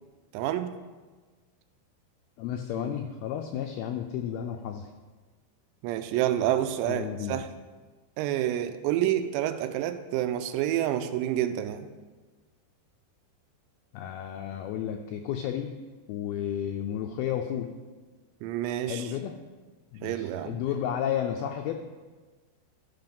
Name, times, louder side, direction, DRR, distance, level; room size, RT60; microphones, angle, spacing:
voice 1, 0.3-0.8 5.8-7.5 8.2-11.9 18.4-19.1 20.0-20.6, right 12 dB, 85° right, 9 dB, 2.8 m, -28 dB
voice 2, 2.4-4.9 6.9-7.4 13.9-15.7 16.1-17.7 18.9-19.3 19.9-21.7, left 9 dB, 90° left, 4 dB, 2.2 m, -32 dB
13.0 x 5.9 x 5.3 m, 1.3 s
omnidirectional pair, 5.0 m